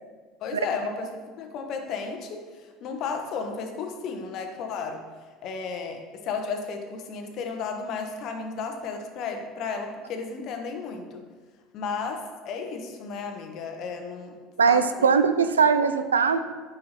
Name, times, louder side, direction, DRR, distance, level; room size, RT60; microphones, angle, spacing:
voice 1, 0.4-1.1 1.4-2.4 2.8-5.0 5.4-11.2 11.7-14.3 14.6-15.1 15.8-15.9, left 5 dB, 55° left, 4 dB, 1.1 m, -33 dB
voice 2, 14.6-16.4, right 6 dB, 85° right, 11 dB, 0.4 m, -20 dB
8.7 x 5.6 x 4.2 m, 1.5 s
hypercardioid pair, 70°, 0 cm